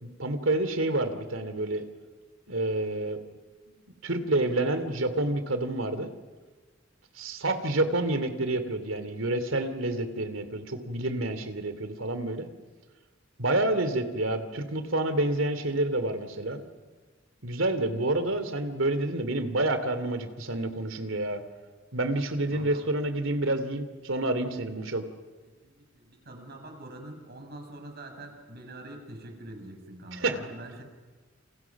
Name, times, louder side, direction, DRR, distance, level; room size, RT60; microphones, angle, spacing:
voice 1, 0.0-1.8 2.5-3.2 4.0-6.1 7.2-12.5 13.4-16.7 17.4-21.4 21.9-25.1 30.1-30.4, right 2 dB, 90° right, 10 dB, 2.9 m, -28 dB
voice 2, 22.5-22.8 25.4-30.8, right 1 dB, 55° right, 4 dB, 6.4 m, -45 dB
29.5 x 29.0 x 6.0 m, 1.3 s
head